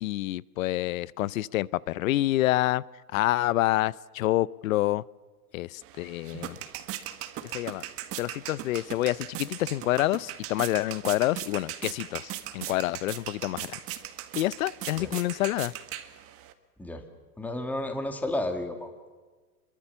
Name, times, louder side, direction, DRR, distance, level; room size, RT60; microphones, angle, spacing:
voice 1, 0.0-2.8 3.1-5.0 5.5-6.6 7.5-7.8 8.2-13.8 14.4-15.7, left 16 dB, 60° left, 22 dB, 0.7 m, -27 dB
sound 1, 5.8-16.5, right 12 dB, 30° right, 1.5 m, -39 dB
voice 2, 17.4-18.9, left 1 dB, 5° left, 4 dB, 2.1 m, -32 dB
26.5 x 22.5 x 7.0 m, 1.4 s
hypercardioid pair, 135°, 47 cm